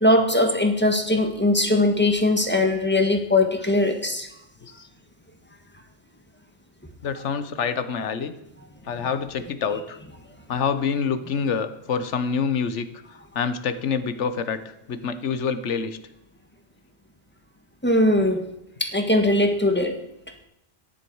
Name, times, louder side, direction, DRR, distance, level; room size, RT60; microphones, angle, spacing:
voice 1, 0.0-4.3 9.0-9.1 17.8-18.4 18.8-19.9, left 1 dB, 10° left, 4 dB, 1.4 m, -20 dB
voice 2, 7.0-8.3 8.8-10.0 10.5-12.9 13.3-14.6 14.9-16.0, left 6 dB, 90° left, 11 dB, 1.2 m, -26 dB
14.0 x 10.0 x 4.7 m, 0.84 s
omnidirectional pair, 1.2 m